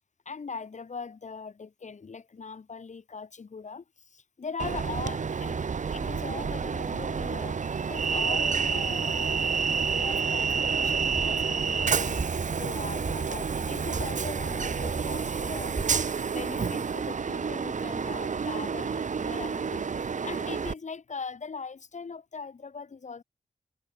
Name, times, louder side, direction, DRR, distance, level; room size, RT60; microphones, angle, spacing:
voice 1, 0.2-7.6 7.9-15.8 16.1-23.2, left 5 dB, 55° left, 6.1 m, -41 dB
Train, 4.6-20.7, right 5 dB, 60° right, 1.8 m, -29 dB
sound 1, 10.8-12.5 12.8-13.3 13.8-16.0, right 3 dB, 35° right, 4.1 m, -38 dB
wide cardioid pair, 100°, 15 cm